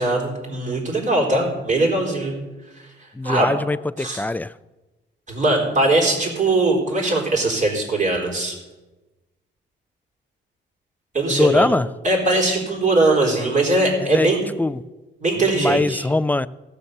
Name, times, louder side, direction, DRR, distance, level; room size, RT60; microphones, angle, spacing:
voice 1, 0.0-2.4 2.8-2.9 3.2-3.6 4.0-4.2 5.3-8.6 11.1-11.7 12.0-14.5 15.2-16.1, right 2 dB, 40° right, 4.2 m, -20 dB
voice 2, 3.2-4.5 11.3-11.9 14.0-14.3 14.6-14.8 15.6-16.5, left 2 dB, 10° left, 0.3 m, -21 dB
16.5 x 6.9 x 6.7 m
cardioid pair, 90°, 20 cm